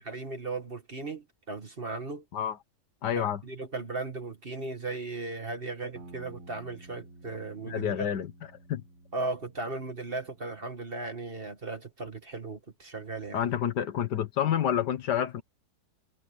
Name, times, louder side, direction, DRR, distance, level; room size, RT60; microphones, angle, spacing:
voice 1, 0.0-2.2 3.2-8.1 9.1-13.4, right 3 dB, 30° right, 2.0 m, -37 dB
voice 2, 3.0-3.4 7.7-8.3 8.7-8.8 13.3-15.4, left 9 dB, 70° left, 1.5 m, -28 dB
sound 1, 6.0-10.6, right 2 dB, 90° right, 6.5 m, -52 dB
omnidirectional pair, 1.9 m